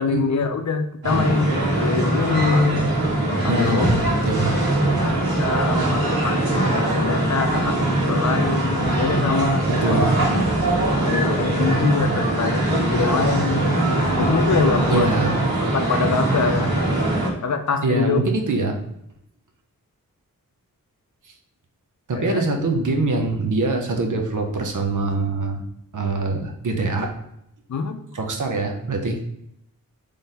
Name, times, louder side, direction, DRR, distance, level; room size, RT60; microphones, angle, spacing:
voice 1, 0.0-2.9 3.4-3.9 5.0-10.2 11.1-13.7 14.2-15.1 15.6-16.7 17.4-18.2 22.1-22.4 27.7-28.0, left 5 dB, 50° left, 7 dB, 0.6 m, -24 dB
sound 1, 1.0-17.3, right 1 dB, 80° right, 1.7 m, -21 dB
voice 2, 3.5-4.6 9.7-10.1 14.9-15.3 17.8-18.8 22.1-25.6 25.9-27.2 28.1-29.3, right 3 dB, 60° right, 3 dB, 0.9 m, -23 dB
3.9 x 3.3 x 4.0 m, 0.78 s
wide cardioid pair, 95°, 35 cm